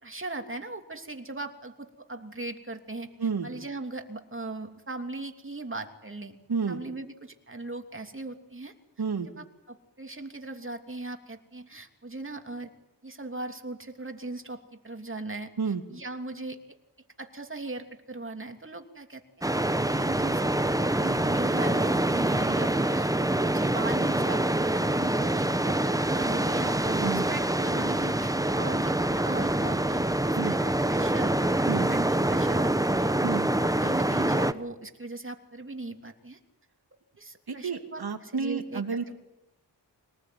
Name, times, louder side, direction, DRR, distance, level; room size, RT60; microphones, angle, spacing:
voice 1, 0.0-3.1 3.4-6.4 6.7-8.7 9.4-12.7 13.0-15.5 15.9-16.6 17.2-19.2 19.9-23.1 23.4-30.6 30.9-31.4 31.8-33.1 33.6-36.4 37.2-39.1, right 2 dB, 30° right, 5 dB, 3.0 m, -38 dB
voice 2, 3.2-3.5 6.5-6.8 9.0-9.3 15.6-15.8 27.0-27.3 30.3-30.5 31.7-31.9 33.2-33.5 37.5-39.0, right 5 dB, 60° right, 5 dB, 2.6 m, -30 dB
sound 1, 19.4-34.5, right 1 dB, 10° right, 1.1 m, -25 dB
25.5 x 19.5 x 9.5 m, 0.94 s
cardioid pair, 65°, 42 cm